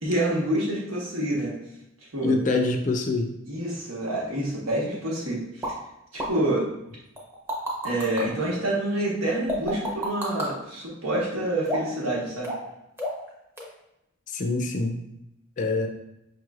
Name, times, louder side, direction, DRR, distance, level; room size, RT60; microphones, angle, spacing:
voice 1, 0.0-1.5 2.1-2.4 3.5-5.7 6.1-6.7 7.8-12.5, right 1 dB, 90° right, -4 dB, 1.3 m, -27 dB
voice 2, 2.2-3.3 14.3-15.0 15.6-15.9, left 3 dB, 35° left, 5 dB, 0.4 m, -25 dB
sound 1, 5.6-5.7 6.2-6.3 7.2-8.2 9.5-10.5 11.6-12.0 12.4-12.7 13.0-13.3 13.6-13.7, equal, 10° right, 0.7 m, -29 dB
5.3 x 3.1 x 2.4 m, 0.86 s
head